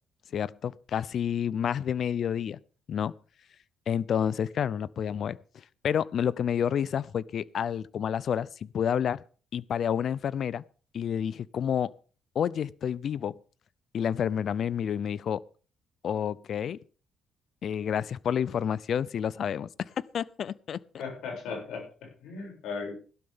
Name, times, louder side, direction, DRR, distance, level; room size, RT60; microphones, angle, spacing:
voice 1, 0.3-2.6 2.9-3.1 3.9-5.4 5.8-9.2 9.5-10.6 10.9-11.9 12.3-13.4 13.9-15.4 16.0-16.8 17.6-19.7 20.1-20.8, left 8 dB, 60° left, 21 dB, 0.6 m, -29 dB
voice 2, 21.0-22.9, left 5 dB, 85° left, 1 dB, 7.4 m, -37 dB
17.0 x 12.0 x 3.8 m, 0.39 s
cardioid pair, 90°, 0 cm